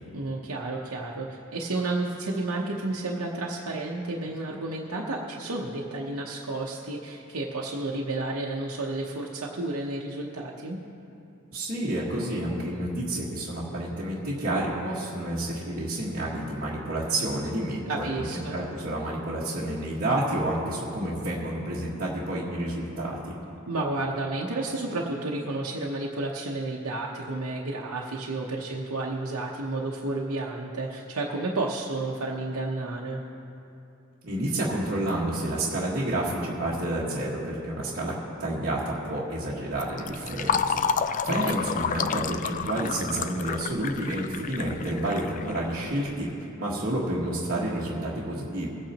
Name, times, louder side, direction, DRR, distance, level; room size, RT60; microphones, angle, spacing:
voice 1, 0.1-10.8 17.9-18.5 23.7-33.2 41.3-41.6, right 2 dB, 85° right, -3 dB, 0.9 m, -31 dB
voice 2, 11.5-23.3 34.2-46.3 46.6-48.7, right 1 dB, 45° right, -9 dB, 1.6 m, -30 dB
Fill (with liquid), 39.7-46.1, left 7 dB, 35° left, 0.3 m, -30 dB
22.0 x 8.8 x 2.9 m, 2.7 s
head